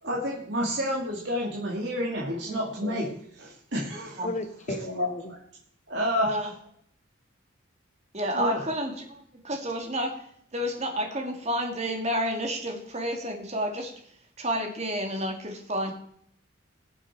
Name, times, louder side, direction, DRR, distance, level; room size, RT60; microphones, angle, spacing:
voice 1, 0.0-3.1 3.4-4.2 5.0-5.4 5.9-6.5 8.3-8.6, equal, 60° right, -4 dB, 2.3 m, -29 dB
voice 2, 2.5-3.2 4.2-5.3, left 1 dB, 35° left, 9 dB, 1.0 m, -35 dB
voice 3, 6.2-6.5 8.1-15.9, equal, 35° right, 3 dB, 2.3 m, -30 dB
21.0 x 7.3 x 4.5 m, 0.66 s
head